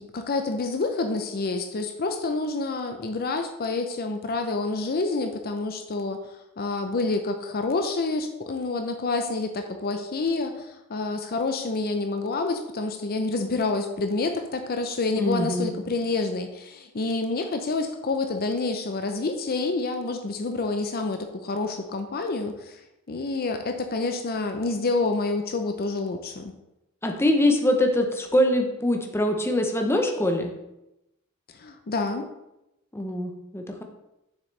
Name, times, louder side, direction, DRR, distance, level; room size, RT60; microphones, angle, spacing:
voice 1, 0.0-22.8 23.1-26.5 31.5-32.3, left 3 dB, 45° left, 6 dB, 0.6 m, -28 dB
voice 2, 15.2-15.7 27.0-30.5 32.9-33.8, left 1 dB, 10° left, 3 dB, 0.8 m, -23 dB
7.4 x 6.4 x 3.3 m, 0.90 s
head